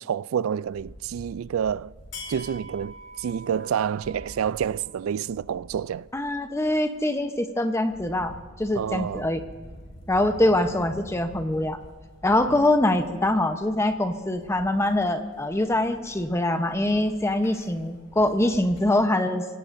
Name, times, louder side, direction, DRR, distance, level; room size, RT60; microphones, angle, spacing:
voice 1, 0.0-1.9 2.3-6.1 8.7-9.3, right 8 dB, 80° right, 0.3 m, -28 dB
sound 1, 0.6-19.0, equal, 65° left, 4.8 m, -46 dB
voice 2, 6.1-9.4 10.1-11.8 12.2-19.5, left 1 dB, 15° left, 0.8 m, -24 dB
26.0 x 17.5 x 2.6 m
head